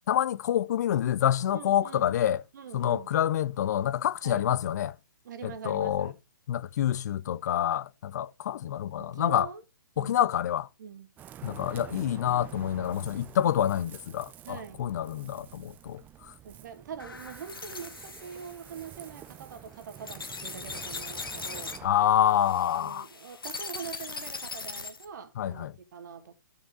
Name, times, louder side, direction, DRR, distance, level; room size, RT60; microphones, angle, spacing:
voice 1, 0.1-2.4 2.7-4.9 5.4-6.1 6.5-9.5 10.0-10.7 11.4-16.3 21.8-23.1 25.4-25.8, left 11 dB, 50° left, 0.5 m, -27 dB
voice 2, 1.5-2.1 2.5-3.1 4.2-4.5 5.2-6.1 9.0-9.6 9.9-10.2 10.8-11.1 14.4-14.8 16.4-21.7 22.7-26.3, right 7 dB, 55° right, 1.6 m, -43 dB
Ocean, 11.2-21.9, right 11 dB, 15° right, 0.4 m, -48 dB
sound 1, 17.0-25.1, left 4 dB, 85° left, 1.3 m, -40 dB
11.5 x 5.3 x 3.6 m
hypercardioid pair, 135°, 12 cm